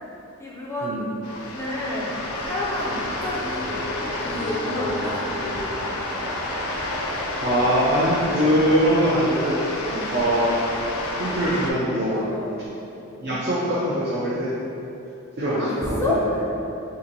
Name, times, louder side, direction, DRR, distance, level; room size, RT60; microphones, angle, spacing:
voice 1, 0.4-5.9 9.8-10.1 12.1-12.6 15.5-16.2, left 1 dB, 10° left, -6 dB, 0.4 m, -30 dB
sound 1, 1.2-11.7, left 1 dB, 80° left, 0.4 m, -29 dB
voice 2, 7.4-9.6 10.1-10.6 11.2-12.2 13.2-14.5 15.4-16.2, equal, 45° right, -8 dB, 0.4 m, -22 dB
2.8 x 2.5 x 4.0 m, 2.9 s
head